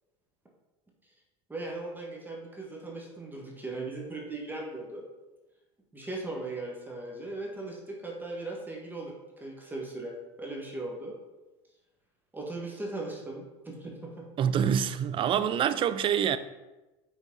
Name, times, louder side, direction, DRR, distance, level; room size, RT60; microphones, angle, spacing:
voice 1, 1.5-5.0 5.9-11.1 12.3-14.3, right 2 dB, 10° right, -1 dB, 1.4 m, -38 dB
voice 2, 14.4-16.4, right 8 dB, 35° right, 13 dB, 0.4 m, -26 dB
6.1 x 4.0 x 3.8 m, 1.1 s
hypercardioid pair, 95°, 15 cm